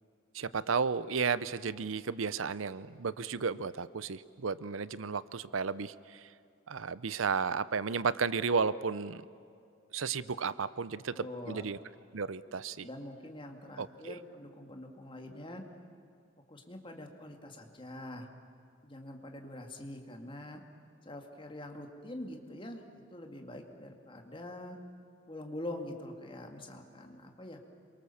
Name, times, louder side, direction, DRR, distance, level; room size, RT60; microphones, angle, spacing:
voice 1, 0.3-6.3 6.7-9.2 9.9-11.8 12.1-12.9 13.8-14.2, right 5 dB, 90° right, 17 dB, 0.7 m, -33 dB
voice 2, 11.1-11.7 12.7-15.6 16.5-18.3 18.8-20.6 21.0-24.8 25.3-27.6, left 1 dB, 25° left, 4 dB, 2.3 m, -44 dB
27.5 x 23.5 x 7.1 m, 2.4 s
head